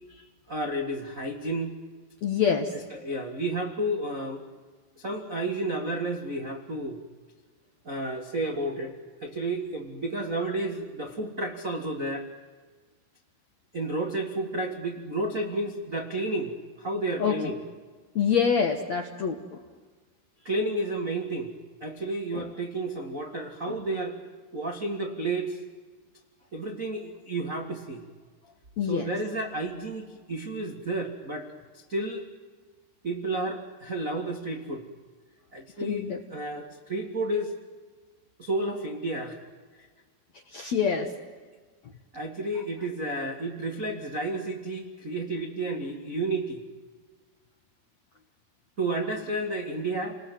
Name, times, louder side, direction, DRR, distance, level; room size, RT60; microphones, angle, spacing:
voice 1, 0.5-1.7 2.7-4.4 5.0-7.0 7.8-12.3 13.7-17.6 20.4-21.5 21.8-24.2 24.5-25.6 26.5-28.0 28.9-32.2 33.0-34.8 35.5-37.5 38.4-39.4 39.7-39.9 42.1-46.6 48.8-50.2, right 2 dB, 60° right, 1 dB, 0.8 m, -31 dB
voice 2, 2.2-2.7 17.2-17.4 18.2-19.6 22.3-22.4 23.7-23.8 28.8-29.1 35.8-36.2 40.5-41.1, left 7 dB, 65° left, 4 dB, 1.7 m, -26 dB
29.5 x 20.5 x 9.3 m, 1.4 s
omnidirectional pair, 5.0 m